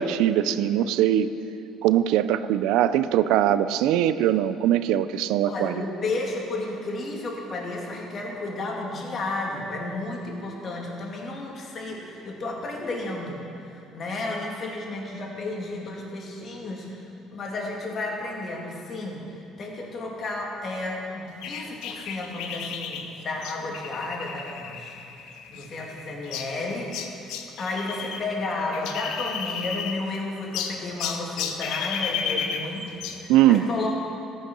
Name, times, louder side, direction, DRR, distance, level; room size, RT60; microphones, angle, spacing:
voice 1, 0.0-1.3 1.8-5.7 33.3-33.7, right 11 dB, 80° right, 13 dB, 0.4 m, -21 dB
voice 2, 5.5-25.1 25.5-27.3 27.6-33.9, left 2 dB, 50° left, -1 dB, 2.4 m, -32 dB
sound 1, 21.4-28.2 28.5-30.2 30.5-33.3, left 7 dB, 75° left, 0.8 m, -33 dB
14.0 x 6.3 x 6.2 m, 2.7 s
supercardioid pair, 75°, 0 cm